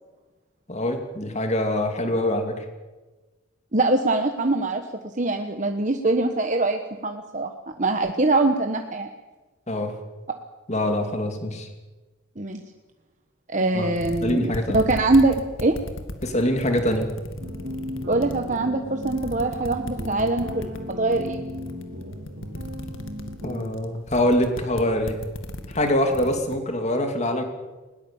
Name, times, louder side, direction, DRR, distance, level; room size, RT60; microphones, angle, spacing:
voice 1, 0.7-2.6 9.7-10.0 10.7-11.7 13.7-13.9 14.2-14.8 16.2-17.1 23.4-25.2 25.7-27.4, left 1 dB, 35° left, 5 dB, 2.7 m, -24 dB
voice 2, 3.7-4.8 5.2-7.5 7.8-9.1 12.4-12.6 13.5-15.8 18.1-21.4, right 2 dB, 35° right, 5 dB, 1.2 m, -23 dB
sound 1, 13.7-13.8 14.0-18.6 19.0-26.5, left 1 dB, 65° left, 2.0 m, -36 dB
sound 2, 17.4-23.7, left 1 dB, 70° right, 3.3 m, -36 dB
20.5 x 19.5 x 7.2 m, 1.2 s
head